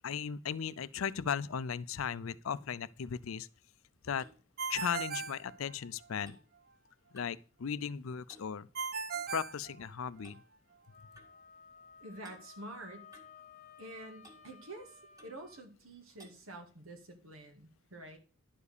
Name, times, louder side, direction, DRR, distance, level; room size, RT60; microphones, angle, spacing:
voice 1, 0.0-3.5 4.0-4.3 4.7-6.4 7.1-8.7 9.3-10.4, left 7 dB, 75° left, 0.5 m, -37 dB
Clock, 3.6-7.5 7.7-8.0 8.3-9.3 10.2-10.4 11.2-11.3 12.2-12.4 13.1-13.9 14.2-14.5 15.2-15.4 16.2-16.4, right 1 dB, 15° right, 2.0 m, -61 dB
Ringtone, 4.6-6.2 8.8-10.4, right 5 dB, 45° right, 0.6 m, -38 dB
Wind instrument woodwind instrument, 10.9-15.7, left 6 dB, 35° left, 0.8 m, -56 dB
voice 2, 12.0-13.1 13.8-18.2, right 1 dB, 85° right, 2.1 m, -48 dB
11.0 x 4.9 x 6.7 m
head